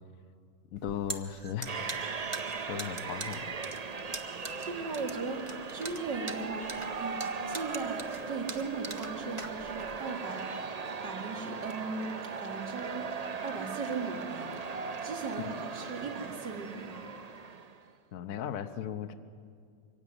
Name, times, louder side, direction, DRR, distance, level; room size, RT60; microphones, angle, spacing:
voice 1, 0.7-1.8 2.7-3.5 15.4-15.6 18.1-19.1, left 9 dB, 55° left, 10 dB, 1.2 m, -37 dB
sound 1, 0.8-10.0, right 3 dB, 20° right, 1.0 m, -42 dB
sound 2, 1.7-17.9, right 5 dB, 50° right, 0.4 m, -38 dB
voice 2, 4.6-5.4 5.7-6.7 7.0-10.5 11.0-13.1 13.4-14.5 15.0-17.1, right 4 dB, 75° right, 3 dB, 2.9 m, -38 dB
24.0 x 16.5 x 9.8 m, 2.2 s
omnidirectional pair, 1.9 m